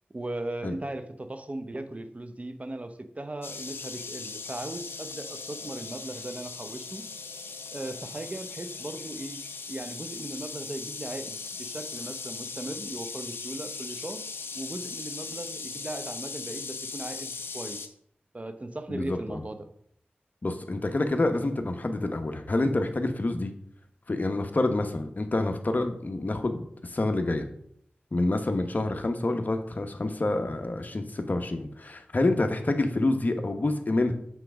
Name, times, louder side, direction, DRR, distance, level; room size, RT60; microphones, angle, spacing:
voice 1, 0.1-7.0 7.7-9.4 9.7-14.2 14.5-17.9 18.3-19.7, right 2 dB, 35° right, 8 dB, 0.9 m, -38 dB
sound 1, 3.4-17.9, left 4 dB, 80° left, 0.6 m, -39 dB
voice 2, 18.9-19.5 20.4-23.5 24.1-27.5 28.1-34.1, left 2 dB, 45° left, 6 dB, 1.1 m, -27 dB
7.8 x 3.4 x 6.2 m, 0.70 s
cardioid pair, 45°, 4 cm